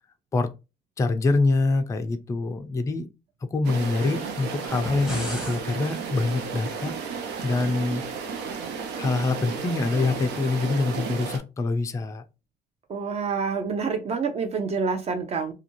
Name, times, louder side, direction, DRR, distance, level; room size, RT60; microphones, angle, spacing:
voice 1, 1.0-3.1 3.5-6.9 7.4-8.0 9.0-12.2, left 3 dB, 20° left, 0.3 m, -25 dB
sound 1, 3.6-11.4, right 5 dB, 80° right, 0.6 m, -33 dB
sound 2, 4.7-5.6, left 1 dB, 5° right, 0.8 m, -34 dB
voice 2, 12.9-15.5, right 5 dB, 40° right, 0.6 m, -27 dB
2.4 x 2.2 x 2.9 m
cardioid pair, 110°, 17 cm